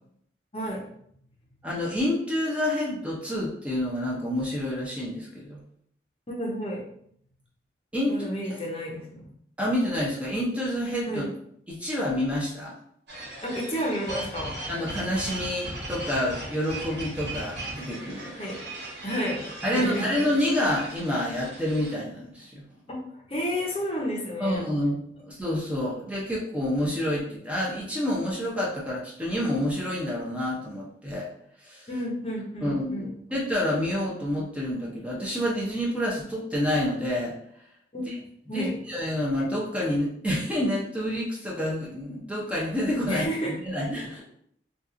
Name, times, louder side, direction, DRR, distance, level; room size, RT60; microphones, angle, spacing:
voice 1, 0.5-0.8 6.3-6.8 8.1-9.2 11.1-11.3 13.4-14.5 18.3-18.6 19.0-20.1 22.9-24.6 31.9-33.1 37.9-38.1 38.5-38.7 43.1-43.5, equal, 35° left, -2 dB, 0.7 m, -31 dB
voice 2, 1.6-5.6 7.9-8.1 9.6-11.2 11.7-12.7 14.7-18.3 19.6-22.6 24.4-31.3 31.6-31.9 32.6-37.3 38.1-38.2 38.5-44.2, left 1 dB, 5° right, -5 dB, 0.6 m, -28 dB
sound 1, 13.1-21.9, right 1 dB, 70° right, 1.4 m, -38 dB
2.9 x 2.3 x 3.7 m, 0.68 s
head